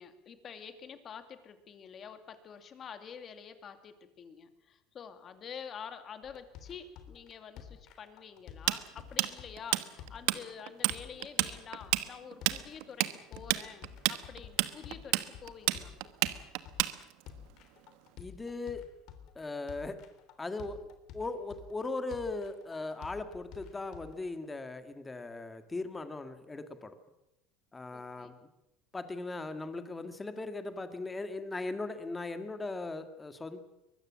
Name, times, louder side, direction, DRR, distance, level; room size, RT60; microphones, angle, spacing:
voice 1, 0.0-15.9 27.9-28.3, left 7 dB, 30° left, 9 dB, 2.4 m, -48 dB
sound 1, 6.2-24.3, left 8 dB, 55° left, 3.4 m, -51 dB
Tools, 8.7-10.4 10.7-11.0 11.2-17.3, right 20 dB, 75° right, 1.2 m, -29 dB
voice 2, 18.2-18.8 19.4-20.0 20.4-20.8 21.1-27.0 27.7-28.3 28.9-33.6, left 3 dB, 15° left, 9 dB, 1.8 m, -38 dB
23.5 x 20.5 x 7.4 m, 0.91 s
cardioid pair, 150°, 0 cm